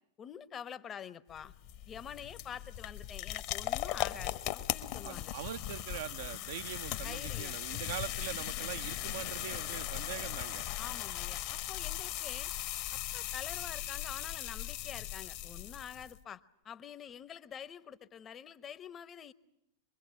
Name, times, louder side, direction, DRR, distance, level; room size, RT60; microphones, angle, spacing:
voice 1, 0.2-1.5 1.9-5.3 7.0-7.6 10.8-12.5 12.9-19.3, left 8 dB, 25° left, 15 dB, 1.1 m, -47 dB
sound 1, 1.3-16.2, left 13 dB, 45° left, 1.4 m, -38 dB
voice 2, 5.0-10.6, right 11 dB, 55° right, 10 dB, 0.9 m, -42 dB
24.5 x 23.0 x 8.9 m, 0.76 s
figure-of-eight pair, 90°, 0 cm